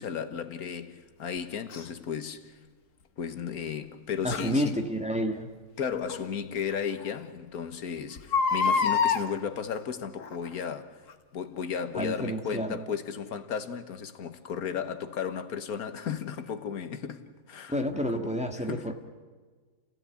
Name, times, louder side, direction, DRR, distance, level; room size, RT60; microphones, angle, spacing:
voice 1, 0.0-2.6 3.2-4.8 5.8-11.0 11.3-17.2 17.5-17.7 18.1-18.3 18.7-18.9, left 7 dB, 85° left, 1.7 m, -34 dB
Crying sobbing, 1.7-1.9 4.3-4.5 6.1-6.2 6.7-6.8 7.0-7.1 8.2-9.2 10.2-10.5 11.1-11.2, left 5 dB, 65° left, 1.5 m, -26 dB
voice 2, 4.2-5.5 11.9-12.8 17.7-18.9, equal, 5° right, 1.7 m, -29 dB
29.5 x 16.5 x 8.4 m
omnidirectional pair, 1.5 m